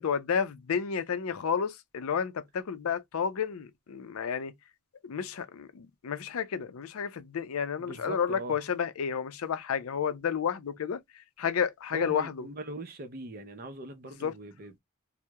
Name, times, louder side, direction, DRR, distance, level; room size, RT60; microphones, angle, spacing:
voice 1, 0.0-4.5 5.0-12.5 14.2-14.3, left 7 dB, 75° left, 0.4 m, -31 dB
voice 2, 7.8-8.6 11.9-14.7, right 1 dB, 40° right, 0.5 m, -40 dB
2.8 x 2.0 x 2.2 m
head